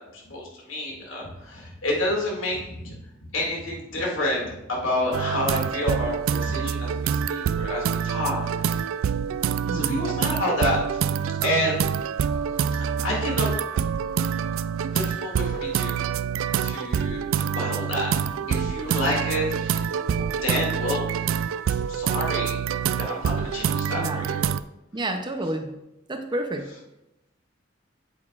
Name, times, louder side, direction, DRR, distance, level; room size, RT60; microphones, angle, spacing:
voice 1, 0.0-3.0 3.3-8.8 9.7-11.0 11.4-11.7 13.0-13.5 14.8-15.9 16.6-18.2 18.5-19.9 20.4-21.3 21.7-22.6 23.0-24.5, left 1 dB, 85° left, -2 dB, 2.4 m, -29 dB
sound 1, 5.1-24.6, right 7 dB, 85° right, 0.3 m, -26 dB
voice 2, 9.7-10.0 24.0-24.3 24.9-25.7 26.1-26.6, right 1 dB, 25° right, 5 dB, 0.7 m, -29 dB
8.5 x 8.4 x 2.5 m, 0.91 s
head